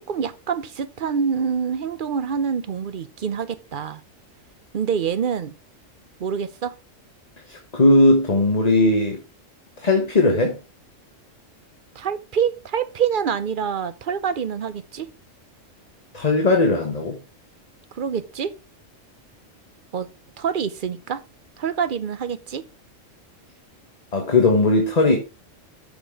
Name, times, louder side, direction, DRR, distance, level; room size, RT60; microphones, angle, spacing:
voice 1, 0.1-4.0 4.7-5.5 6.2-6.7 12.0-15.1 17.9-18.5 19.9-20.1 20.4-21.2 21.6-22.6, right 7 dB, 50° right, 0.8 m, -26 dB
voice 2, 7.5-9.2 9.8-10.6 16.1-17.2 24.1-25.2, left 2 dB, 30° left, 1.4 m, -18 dB
7.0 x 6.1 x 4.7 m
omnidirectional pair, 1.3 m